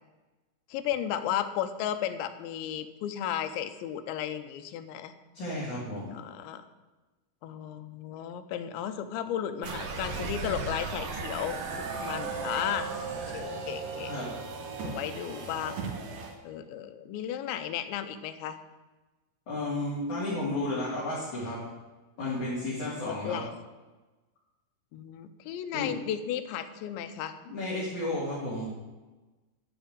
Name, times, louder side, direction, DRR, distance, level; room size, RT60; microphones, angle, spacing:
voice 1, 0.7-5.1 6.1-6.6 7.4-12.9 13.3-14.1 14.8-15.8 16.4-18.6 23.0-23.5 24.9-27.3, left 10 dB, 80° left, 9 dB, 3.0 m, -34 dB
voice 2, 5.3-6.1 14.0-14.3 19.5-21.6 22.2-23.4 25.7-25.9 27.5-28.7, left 1 dB, 45° left, -7 dB, 3.7 m, -32 dB
sound 1, 9.6-16.3, right 4 dB, 85° right, 1.6 m, -36 dB
12.0 x 5.6 x 8.8 m, 1.2 s
omnidirectional pair, 5.3 m